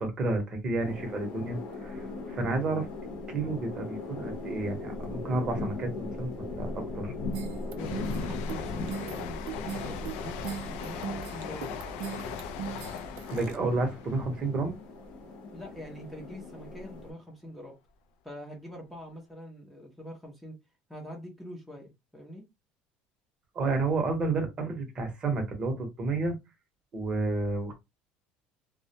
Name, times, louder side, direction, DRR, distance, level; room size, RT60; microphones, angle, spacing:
voice 1, 0.0-2.9 3.3-7.1 13.3-14.8 23.5-26.3 26.9-27.7, right 3 dB, 30° right, 0.8 m, -31 dB
sound 1, 0.8-17.1, left 3 dB, 65° left, 0.8 m, -39 dB
sound 2, 7.3-13.6, right 9 dB, 75° right, 0.4 m, -39 dB
voice 2, 7.7-9.4 9.9-11.8 15.5-17.8 18.2-20.6 20.9-22.4, equal, ahead, 0.6 m, -44 dB
sound 3, 7.8-15.2 15.5-15.9, left 6 dB, 80° left, 0.4 m, -40 dB
2.2 x 2.0 x 2.7 m
cardioid pair, 145°, 3 cm